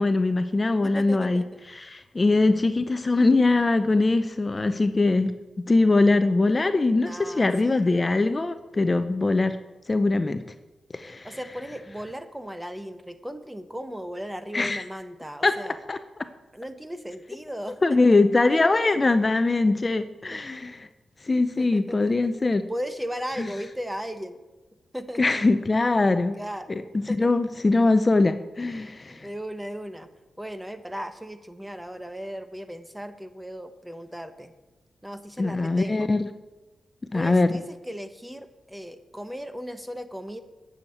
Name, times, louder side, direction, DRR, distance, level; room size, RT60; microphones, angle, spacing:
voice 1, 0.0-1.4 1.7-5.3 5.7-9.6 9.9-10.4 10.9-11.4 14.5-14.8 15.4-15.5 15.9-16.0 17.8-20.9 21.2-22.6 23.4-23.5 25.2-26.4 26.7-26.8 27.2-29.3 35.4-36.3 37.1-37.5, left 3 dB, 30° left, 10 dB, 0.6 m, -22 dB
voice 2, 0.7-1.6 7.0-7.9 11.2-15.8 16.5-18.2 20.3-20.4 21.6-22.2 22.7-24.4 24.9-25.2 26.4-26.7 27.1-27.4 29.1-30.1 30.4-34.5 35.0-36.1 37.1-40.4, equal, 5° right, 10 dB, 1.0 m, -36 dB
9.7 x 7.2 x 8.0 m, 1.1 s
cardioid pair, 70°, 0 cm